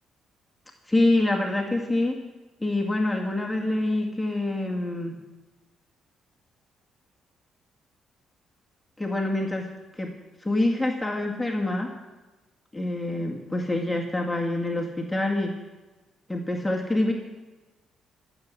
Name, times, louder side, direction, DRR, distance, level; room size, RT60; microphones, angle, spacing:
voice 1, 0.9-2.2 2.6-5.2 9.0-9.7 10.0-10.1 10.4-11.9 12.7-15.6 16.3-17.1, left 2 dB, 10° left, 0 dB, 2.1 m, -26 dB
14.0 x 7.7 x 9.8 m, 1.1 s
cardioid pair, 90°, 0 cm